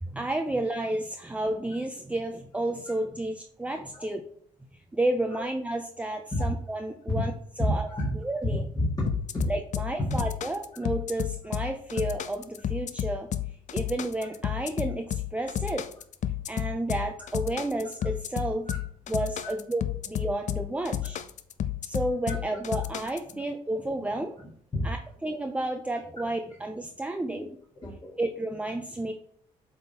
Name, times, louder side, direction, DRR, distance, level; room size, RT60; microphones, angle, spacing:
voice 1, 0.0-4.2 4.9-7.3 7.6-7.9 8.2-8.6 9.5-15.9 16.5-18.7 19.1-21.2 21.8-24.5 24.8-25.0 25.2-27.5 28.2-29.1, right 1 dB, 10° right, 4 dB, 0.6 m, -31 dB
voice 2, 8.5-9.5 18.7-18.8 19.4-19.5 22.3-22.4 23.3-23.4 24.7-24.9 27.3-27.5 27.8-28.1, left 1 dB, 25° left, -5 dB, 1.9 m, -30 dB
sound 1, 9.1-23.3, left 11 dB, 55° left, 0.5 m, -32 dB
7.7 x 3.7 x 4.2 m, 0.62 s
cardioid pair, 85°, 14 cm